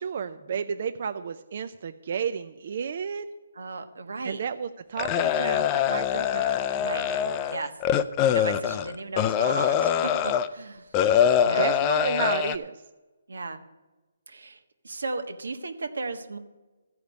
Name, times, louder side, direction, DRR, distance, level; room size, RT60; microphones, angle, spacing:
voice 1, 0.0-3.3 4.2-6.6 11.5-12.8, right 7 dB, 45° right, 10 dB, 0.4 m, -32 dB
voice 2, 3.5-4.4 6.8-7.1 7.5-7.7 8.3-10.9 11.4-11.7 13.3-13.6 14.3-14.6 14.8-16.4, right 3 dB, 90° right, 8 dB, 1.3 m, -35 dB
sound 1, 5.0-10.5 10.9-12.6, left 9 dB, 20° left, 0.4 m, -24 dB
14.0 x 5.0 x 8.1 m, 1.1 s
hypercardioid pair, 170°, 0 cm